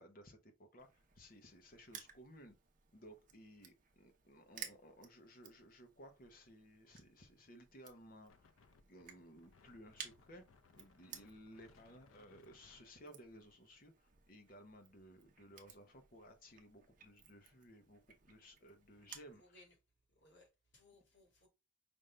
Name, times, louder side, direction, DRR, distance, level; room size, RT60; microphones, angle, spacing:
voice 1, 0.0-2.6 2.9-8.5 8.8-10.4 10.7-18.0 18.3-19.6, equal, 45° left, 0.9 m, -58 dB
Crushing, 0.8-19.3, right 8 dB, 40° right, 0.7 m, -58 dB
Wind, 8.3-13.8, left 4 dB, 85° left, 0.5 m, -68 dB
voice 2, 19.4-19.7 20.2-21.5, left 2 dB, 60° left, 1.8 m, -65 dB
5.3 x 2.6 x 3.2 m
head